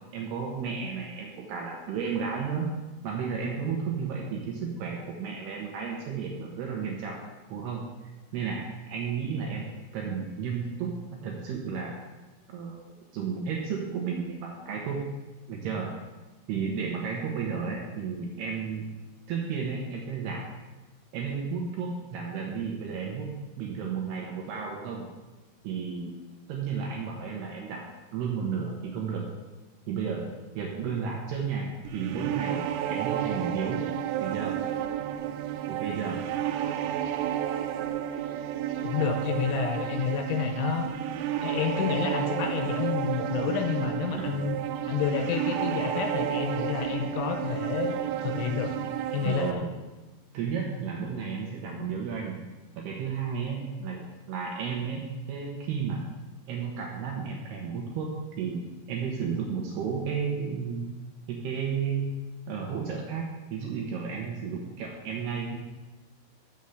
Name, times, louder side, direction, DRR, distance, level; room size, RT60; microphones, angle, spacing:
voice 1, 0.1-2.7 3.0-7.2 7.5-7.9 8.3-9.7 9.9-11.0 11.2-11.9 12.5-12.8 13.1-15.0 15.5-15.9 16.5-18.9 19.3-20.4 21.1-23.3 23.6-25.0 25.6-26.1 26.5-27.8 28.1-29.3 29.9-30.3 30.5-33.9 34.2-34.6 35.7-36.2 44.1-44.4 49.2-49.7 50.3-52.4 52.7-55.0 55.3-56.0 56.5-58.6 58.9-60.9 61.3-62.1 62.5-65.6, right 6 dB, 70° right, 0 dB, 2.6 m, -33 dB
sound 1, 31.9-49.5, right 11 dB, 90° right, 3.2 m, -31 dB
voice 2, 38.8-40.9 41.4-44.6 44.9-48.7 49.1-49.6, left 8 dB, 80° left, 6 dB, 2.9 m, -29 dB
7.2 x 7.1 x 7.8 m, 1.1 s
omnidirectional pair, 5.8 m